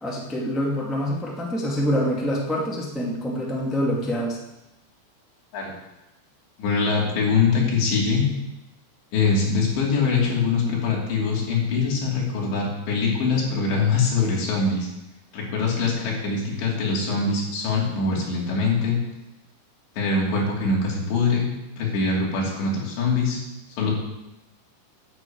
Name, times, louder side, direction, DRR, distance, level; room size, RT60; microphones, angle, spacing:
voice 1, 0.0-4.4, equal, ahead, -3 dB, 0.5 m, -26 dB
voice 2, 6.6-8.3 9.1-14.9 15.3-19.0 20.0-21.5 21.8-23.4 23.8-23.9, left 4 dB, 75° left, -3 dB, 5.2 m, -23 dB
11.0 x 7.3 x 8.7 m, 0.95 s
omnidirectional pair, 5.2 m